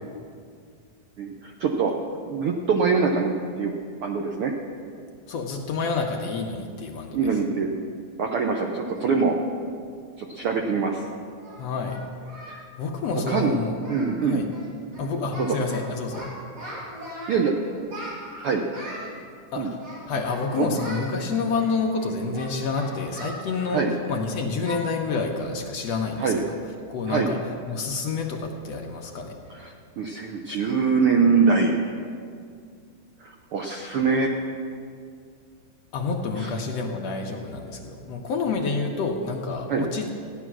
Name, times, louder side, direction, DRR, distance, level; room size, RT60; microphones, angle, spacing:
voice 1, 1.2-1.9 2.3-3.7 4.0-4.5 7.1-7.7 8.2-9.3 10.2-11.0 12.5-12.6 13.3-13.5 13.9-14.4 15.4-15.5 17.3-17.5 18.4-18.6 19.6-19.7 23.7-23.9 26.2-26.4 27.1-27.3 29.5-31.8 33.2-34.3 36.4-36.5 39.7-39.8, right 5 dB, 75° right, 2 dB, 1.3 m, -23 dB
voice 2, 5.3-7.4 11.6-12.0 12.8-13.7 14.2-14.5 15.0-16.3 19.5-19.8 20.1-26.5 26.9-27.4 27.7-29.7 35.9-40.1, left 4 dB, 65° left, 1 dB, 1.9 m, -28 dB
Singing, 11.4-12.6 12.9-13.1 13.4-13.5 13.8-14.2 14.4-14.7 14.9-15.8 16.1-17.4 17.9-19.1 19.8-20.4 20.7-21.1 21.5-24.2 24.6-24.8 25.2-25.4 25.8-25.9 26.4-26.6, equal, 55° right, 4.8 m, -40 dB
15.5 x 10.5 x 6.1 m, 2.2 s
omnidirectional pair, 3.6 m